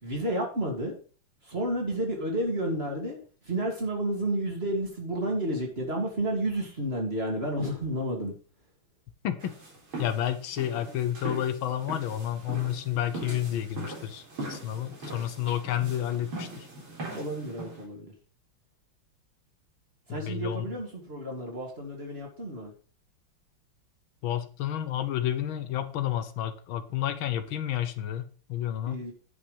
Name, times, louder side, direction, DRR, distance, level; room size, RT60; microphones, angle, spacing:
voice 1, 0.0-1.0 1.4-3.2 3.4-8.3 17.1-18.1 20.1-22.7 28.9-29.1, right 1 dB, 30° right, 2.8 m, -31 dB
voice 2, 9.2-9.6 10.0-14.2 14.5-16.7 20.1-20.6 24.2-29.0, left 11 dB, 80° left, 1.7 m, -30 dB
sound 1, 9.4-17.8, right 1 dB, 80° right, 4.6 m, -40 dB
10.5 x 5.7 x 5.3 m
omnidirectional pair, 2.2 m